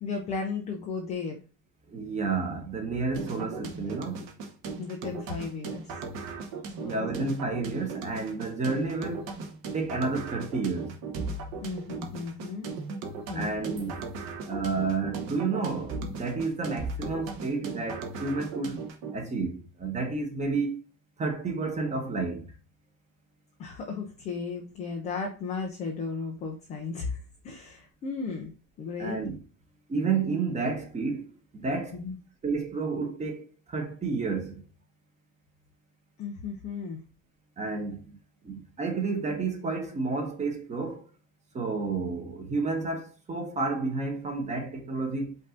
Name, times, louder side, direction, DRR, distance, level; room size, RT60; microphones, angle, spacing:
voice 1, 0.0-1.4 3.4-3.5 3.8-4.0 4.8-5.9 6.7-7.1 11.6-12.7 13.3-13.6 23.6-28.5 28.8-29.2 31.9-32.2 36.2-37.0, left 4 dB, 15° left, 0.3 m, -35 dB
voice 2, 1.9-4.2 6.8-9.4 9.7-11.0 13.3-14.2 14.4-18.8 19.1-20.8 21.2-22.5 29.0-29.4 29.9-32.0 32.4-34.6 37.6-38.2 38.4-41.0 41.5-45.4, right 4 dB, 15° right, 0.9 m, -31 dB
sound 1, 3.1-19.1, right 4 dB, 40° right, 1.0 m, -38 dB
5.3 x 2.7 x 3.7 m
supercardioid pair, 155°, 47 cm